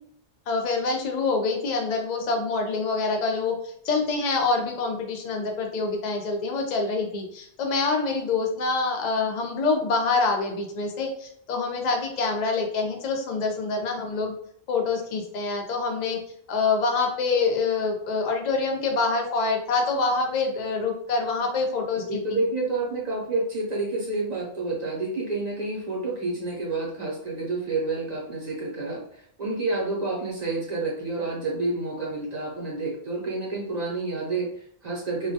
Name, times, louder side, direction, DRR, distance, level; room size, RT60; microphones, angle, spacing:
voice 1, 0.5-3.6 3.8-14.3 14.7-16.2 16.5-22.0, left 3 dB, 55° left, 3 dB, 0.5 m, -26 dB
voice 2, 22.1-35.3, right 3 dB, 50° right, -3 dB, 0.6 m, -29 dB
2.2 x 2.1 x 2.7 m, 0.68 s
omnidirectional pair, 1.1 m